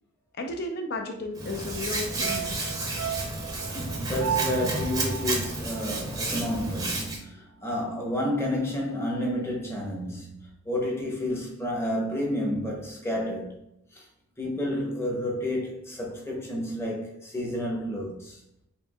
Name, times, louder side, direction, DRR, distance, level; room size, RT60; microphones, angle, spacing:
voice 1, 0.4-2.7, left 2 dB, 50° left, 0.6 m, -34 dB
Hands, 1.4-7.2, right 2 dB, 20° right, 0.7 m, -31 dB
sound 1, 2.2-6.6 6.9-7.0, right 9 dB, 90° right, 0.6 m, -35 dB
voice 2, 3.7-13.6 13.9-14.0 14.4-18.4, left 1 dB, 15° left, 0.9 m, -30 dB
4.5 x 3.6 x 2.4 m
head